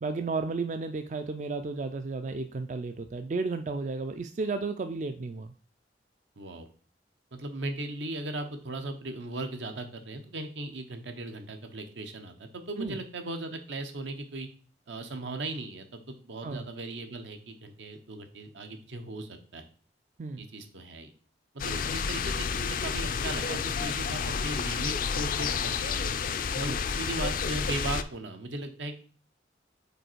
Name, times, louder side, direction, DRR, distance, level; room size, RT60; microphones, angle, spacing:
voice 1, 0.0-5.5 12.8-13.0 16.4-16.7 20.2-20.5 26.6-26.8, right 3 dB, 40° right, 8 dB, 0.3 m, -33 dB
voice 2, 6.4-6.7 7.3-14.5 14.9-19.7 20.4-21.1 21.5-26.1 26.6-28.9, right 2 dB, 80° right, 6 dB, 0.9 m, -37 dB
sound 1, 21.6-28.0, left 6 dB, 50° left, 0.3 m, -30 dB
5.3 x 4.1 x 4.5 m, 0.42 s
head